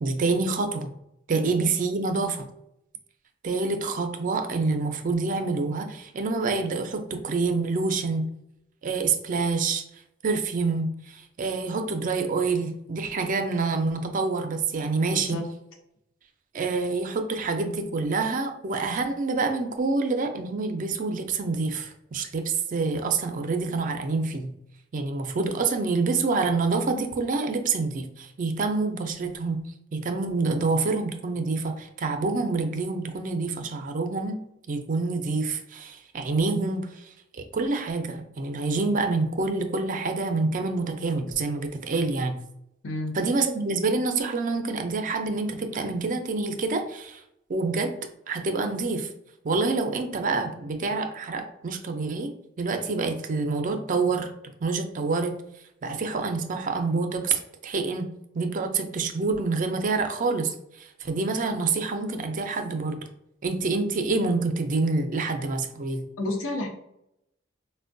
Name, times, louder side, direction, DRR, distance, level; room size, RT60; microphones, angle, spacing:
voice 1, 0.0-0.9 1.3-2.5 3.4-8.3 8.8-9.8 10.2-15.4 16.5-24.5 24.9-29.6 29.9-34.4 34.7-37.1 37.3-42.4 43.1-47.2 47.5-48.0 48.3-49.1 49.4-54.3 54.6-55.3 55.8-58.1 58.3-63.0 63.4-66.0, right 3 dB, 45° right, 6 dB, 0.4 m, -27 dB
voice 2, 15.1-15.4 42.8-43.1 66.2-66.7, left 2 dB, 85° left, 2 dB, 0.7 m, -30 dB
4.3 x 2.1 x 2.5 m, 0.79 s
head